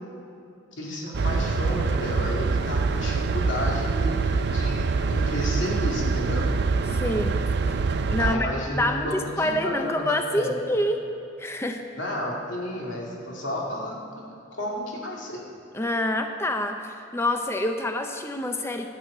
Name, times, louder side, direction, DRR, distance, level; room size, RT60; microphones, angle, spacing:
voice 1, 0.8-6.4 8.2-10.6 12.0-14.3 14.6-15.4, left 1 dB, 70° left, -3 dB, 2.3 m, -32 dB
sound 1, 1.1-8.4, right 4 dB, 55° right, 0.5 m, -25 dB
voice 2, 6.9-7.4 7.7-7.8 8.1-11.0 11.4-11.8 15.7-18.9, left 1 dB, 15° left, 5 dB, 0.6 m, -27 dB
12.5 x 6.3 x 8.4 m, 2.8 s
head